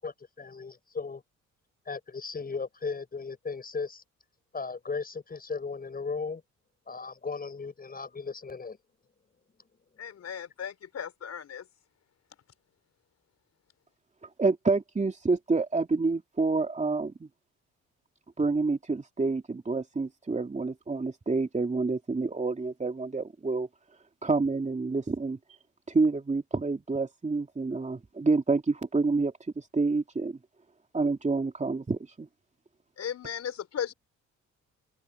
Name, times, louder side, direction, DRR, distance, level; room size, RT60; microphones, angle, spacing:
voice 1, 0.0-1.2 1.9-4.0 4.5-6.4 6.9-8.8, left 4 dB, 30° left, 7.8 m, -36 dB
voice 2, 10.0-11.6 33.0-33.9, left 8 dB, 55° left, 4.9 m, -36 dB
voice 3, 14.4-17.3 18.4-23.7 24.2-25.4 25.9-30.4 30.9-32.3, right 3 dB, 25° right, 3.0 m, -28 dB
open air
cardioid pair, 90°, 30 cm